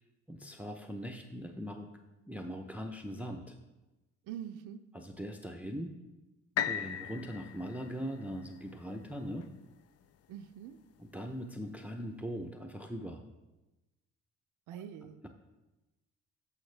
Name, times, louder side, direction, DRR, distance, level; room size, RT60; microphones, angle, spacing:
voice 1, 0.3-1.9 2.3-3.6 4.9-6.0 6.6-9.5 11.0-13.2 14.7-15.3, equal, 5° right, 4 dB, 0.6 m, -41 dB
voice 2, 4.3-4.9 10.3-10.8 14.7-15.3, right 9 dB, 85° right, 8 dB, 0.5 m, -44 dB
sound 1, 6.6-10.5 11.1-11.2, left 10 dB, 55° left, 0.5 m, -39 dB
13.0 x 5.6 x 3.3 m, 1.1 s
cardioid pair, 90°, 30 cm